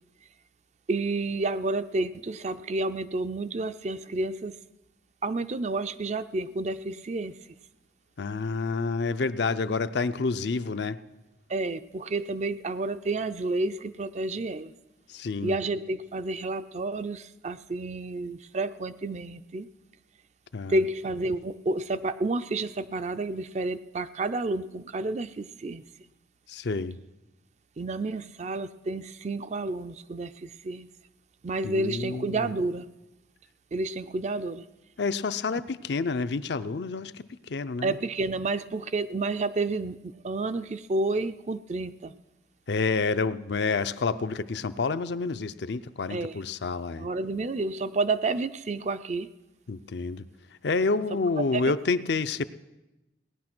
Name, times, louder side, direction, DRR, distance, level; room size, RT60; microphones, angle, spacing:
voice 1, 0.9-4.6 5.2-7.4 11.5-14.7 15.4-19.7 20.7-25.8 27.8-30.9 31.4-32.9 33.7-34.7 37.8-42.1 46.1-46.4 47.0-49.3 51.5-51.7, right 2 dB, 40° right, 12 dB, 0.4 m, -30 dB
voice 2, 8.2-11.0 15.1-15.6 20.5-20.8 26.5-27.0 31.6-32.5 35.0-38.0 42.7-47.1 49.7-50.2 50.6-52.4, left 4 dB, 65° left, 12 dB, 0.5 m, -29 dB
18.0 x 10.5 x 6.1 m, 1.0 s
head